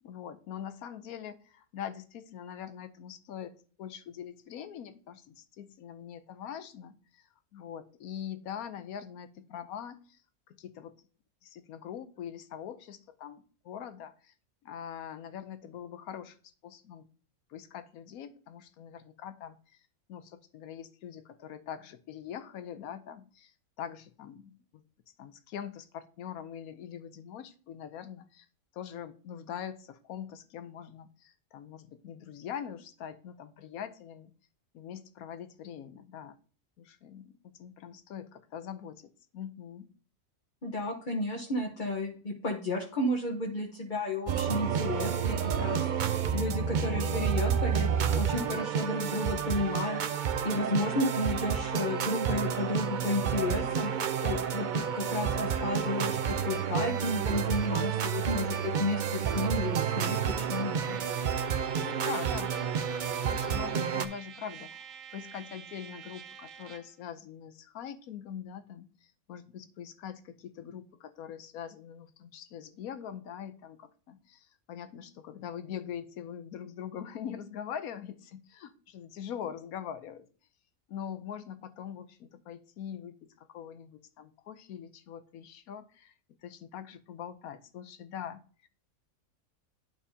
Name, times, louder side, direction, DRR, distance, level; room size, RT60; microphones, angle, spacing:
voice 1, 0.0-10.2 10.5-11.0 11.4-14.3 14.6-17.1 17.5-19.8 20.1-24.8 25.2-28.5 28.7-34.3 34.7-36.4 36.8-39.9 61.7-62.5 63.2-80.3 80.9-86.1 86.4-88.7, left 9 dB, 90° left, 12 dB, 1.2 m, -43 dB
voice 2, 40.6-47.9 48.1-50.0 50.4-53.9 54.2-61.0, left 2 dB, 40° left, 0 dB, 1.1 m, -32 dB
sound 1, 44.3-64.1, right 7 dB, 90° right, 0.4 m, -30 dB
Trumpet, 60.8-67.0, right 8 dB, 70° right, 1.1 m, -48 dB
11.0 x 4.7 x 2.7 m, 0.42 s
omnidirectional pair, 1.5 m